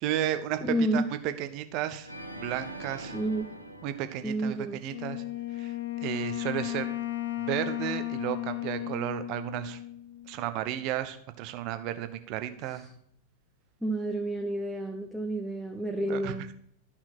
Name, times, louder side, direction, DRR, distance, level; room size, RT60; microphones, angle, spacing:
voice 1, 0.0-0.6 0.9-2.1 2.4-3.1 3.8-5.2 5.6-5.7 6.0-6.9 7.4-9.8 10.3-12.8 16.1-16.5, right 12 dB, 40° right, 10 dB, 1.0 m, -33 dB
voice 2, 0.6-1.0 3.1-3.5 4.2-4.8 12.7-12.8 13.8-16.5, right 1 dB, ahead, 1 dB, 1.0 m, -30 dB
Organ, 2.0-5.2, right 1 dB, 90° left, 1.3 m, -43 dB
Wind instrument woodwind instrument, 4.9-10.3, left 16 dB, 65° left, 1.1 m, -35 dB
13.0 x 5.8 x 4.4 m, 0.65 s
figure-of-eight pair, 90°, 0 cm